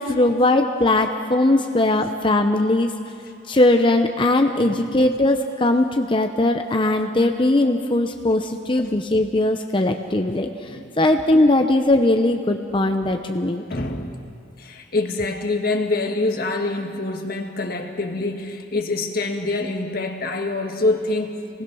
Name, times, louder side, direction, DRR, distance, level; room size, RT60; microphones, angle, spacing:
voice 1, 0.0-2.9 3.5-10.5 11.0-13.6, left 2 dB, 25° left, 5 dB, 0.8 m, -19 dB
voice 2, 4.6-4.9 10.6-10.9 13.7-14.3 14.6-21.6, left 2 dB, 50° left, 3 dB, 1.9 m, -25 dB
26.0 x 19.5 x 6.3 m, 2.4 s
head